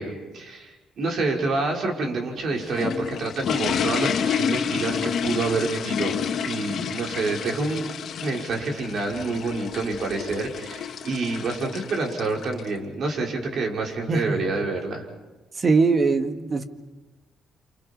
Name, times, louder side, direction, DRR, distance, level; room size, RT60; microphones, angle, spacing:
voice 1, 0.0-7.9 8.2-15.1, right 3 dB, 60° right, 1 dB, 5.6 m, -28 dB
sound 1, 2.4-12.7, left 7 dB, 65° left, 1.7 m, -29 dB
voice 2, 14.1-14.4 15.6-16.7, right 4 dB, 40° right, 7 dB, 2.0 m, -21 dB
29.5 x 27.5 x 5.5 m, 1.1 s
cardioid pair, 90°, 0 cm